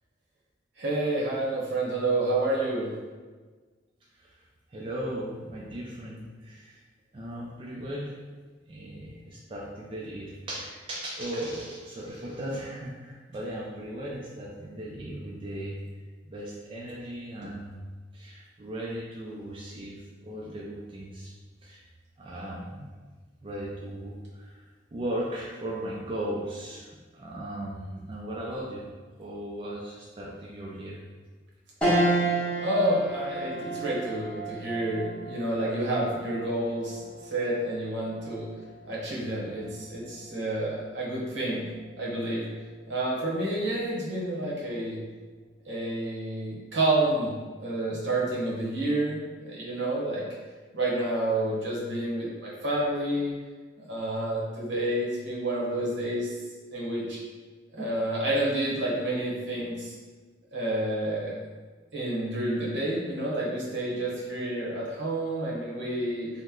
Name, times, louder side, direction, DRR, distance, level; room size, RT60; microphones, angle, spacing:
voice 1, 0.8-2.9 32.6-37.0 37.3-38.5 38.9-41.7 42.0-42.4 42.9-45.0 45.6-47.3 47.6-50.2 50.7-53.3 53.8-56.3 56.7-57.2 57.7-59.9 60.5-61.4 61.9-66.3, right 1 dB, 75° right, -5 dB, 1.0 m, -29 dB
voice 2, 4.7-6.8 7.1-8.1 8.7-15.8 16.2-17.9 18.1-21.3 21.6-21.8 22.2-22.9 23.4-28.9 29.2-31.0, right 1 dB, 30° right, -5 dB, 0.4 m, -37 dB
sound 1, 31.8-41.4 41.9-42.0 43.3-43.8, right 2 dB, 5° left, 0.8 m, -32 dB
2.9 x 2.1 x 3.6 m, 1.4 s
head